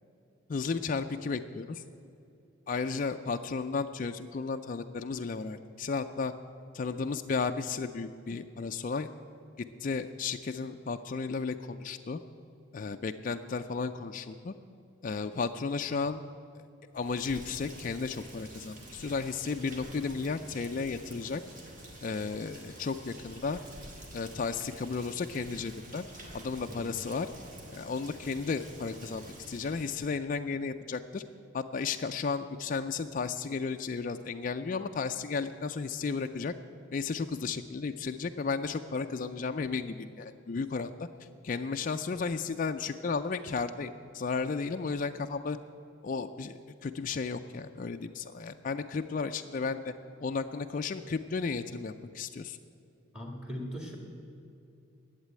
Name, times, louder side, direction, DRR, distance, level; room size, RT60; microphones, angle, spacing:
voice 1, 0.5-1.8 2.7-6.3 6.7-9.1 9.6-12.2 12.7-14.5 15.0-16.2 16.9-21.4 22.0-23.6 24.1-26.1 26.3-27.3 27.7-31.2 31.5-36.5 36.9-41.1 41.4-45.6 46.0-49.9 50.2-52.6, left 4 dB, 40° left, 6 dB, 0.4 m, -34 dB
Rain, 16.9-30.1, right 1 dB, 40° right, 2.0 m, -48 dB
voice 2, 53.1-54.0, equal, 5° right, 1 dB, 1.9 m, -39 dB
11.5 x 8.2 x 8.8 m, 2.6 s
head